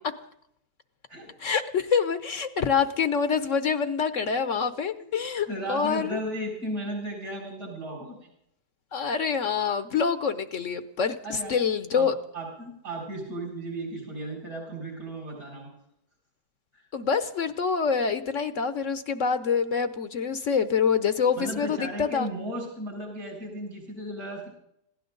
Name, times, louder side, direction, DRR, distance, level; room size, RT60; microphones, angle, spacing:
voice 1, 1.4-6.2 8.9-12.1 16.9-22.3, left 6 dB, 60° left, 11 dB, 1.1 m, -26 dB
voice 2, 5.4-8.3 11.2-11.5 11.9-12.1 12.3-15.7 16.7-16.9 21.4-24.5, right 1 dB, 70° right, -1 dB, 7.6 m, -35 dB
22.0 x 16.5 x 3.9 m, 0.75 s
omnidirectional pair, 1.6 m